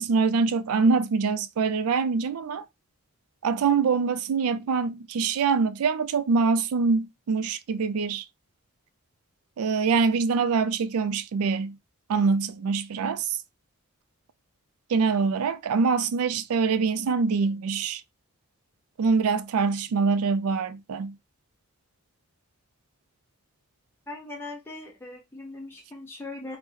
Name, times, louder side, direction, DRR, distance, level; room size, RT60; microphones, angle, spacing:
voice 1, 0.0-2.6 3.4-8.3 9.6-11.8 12.1-13.4 14.9-18.0 19.0-21.2, right 5 dB, 80° right, 0.4 m, -24 dB
voice 2, 24.1-26.6, left 2 dB, 10° left, 0.4 m, -39 dB
3.0 x 2.0 x 3.5 m
head